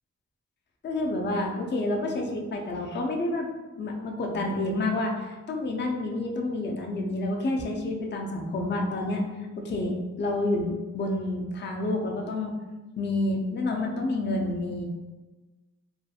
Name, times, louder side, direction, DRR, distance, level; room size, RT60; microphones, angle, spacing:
voice 1, 0.8-3.5 3.7-9.2 9.6-12.5 13.0-14.8, left 2 dB, 35° left, 0 dB, 0.4 m, -29 dB
2.4 x 2.3 x 2.7 m, 1.2 s
wide cardioid pair, 85°, 30 cm